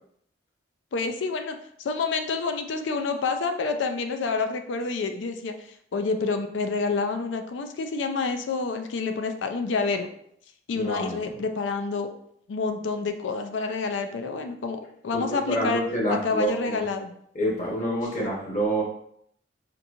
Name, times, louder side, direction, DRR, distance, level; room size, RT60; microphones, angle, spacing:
voice 1, 0.9-10.1 10.7-12.1 12.5-15.8 16.1-17.1, left 4 dB, 75° left, 6 dB, 0.4 m, -28 dB
voice 2, 10.8-11.3 15.1-16.8 17.3-18.8, right 1 dB, 40° left, -3 dB, 1.0 m, -27 dB
3.7 x 2.8 x 2.4 m, 0.68 s
head